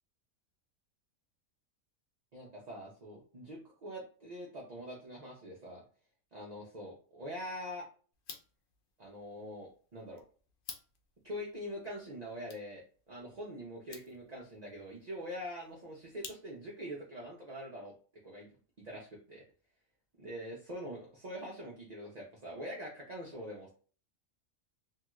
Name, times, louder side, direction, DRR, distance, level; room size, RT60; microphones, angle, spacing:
voice 1, 2.3-5.8 6.3-7.9 9.0-10.2 11.2-17.9 18.2-18.5 18.8-19.4 20.2-23.7, equal, 55° right, -2 dB, 0.4 m, -44 dB
sound 1, 8.1-16.9, left 6 dB, 70° left, 0.5 m, -54 dB
2.8 x 2.3 x 3.0 m, 0.40 s
omnidirectional pair, 1.5 m